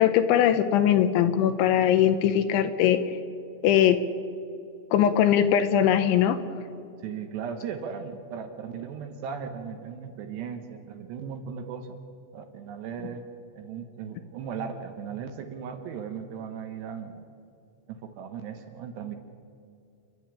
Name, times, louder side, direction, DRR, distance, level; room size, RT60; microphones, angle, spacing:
voice 1, 0.0-3.0 3.6-4.0 4.9-6.4, left 10 dB, 80° left, 10 dB, 3.0 m, -21 dB
voice 2, 7.0-12.0 12.3-13.3 13.5-17.3 17.9-19.2, right 7 dB, 70° right, 6 dB, 2.9 m, -37 dB
28.5 x 12.0 x 8.7 m, 2.6 s
omnidirectional pair, 5.7 m